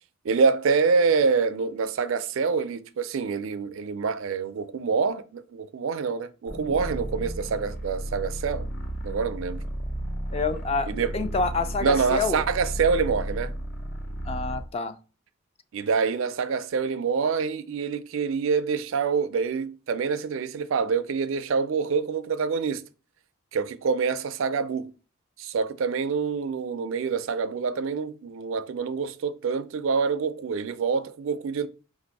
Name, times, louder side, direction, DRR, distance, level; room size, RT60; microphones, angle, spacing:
voice 1, 0.2-8.7 9.0-9.6 10.9-11.1 11.8-13.5 15.7-22.8 23.5-24.9 25.4-31.7, right 5 dB, 65° right, 0.4 m, -26 dB
sound 1, 6.5-14.7, right 1 dB, 55° left, 1.4 m, -33 dB
voice 2, 10.3-12.4 14.3-15.0, left 4 dB, 30° left, 0.4 m, -28 dB
4.9 x 2.6 x 4.0 m
head